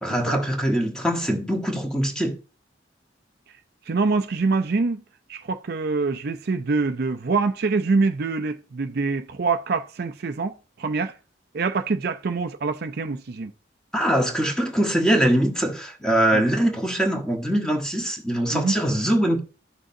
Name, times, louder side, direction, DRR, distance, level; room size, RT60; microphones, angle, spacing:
voice 1, 0.0-2.4 13.9-19.4, right 1 dB, 5° left, 1.2 m, -22 dB
voice 2, 3.9-5.0 5.3-11.1 11.5-13.5 16.3-16.4 18.5-18.7, right 4 dB, 55° right, 0.5 m, -25 dB
13.0 x 6.3 x 2.7 m
head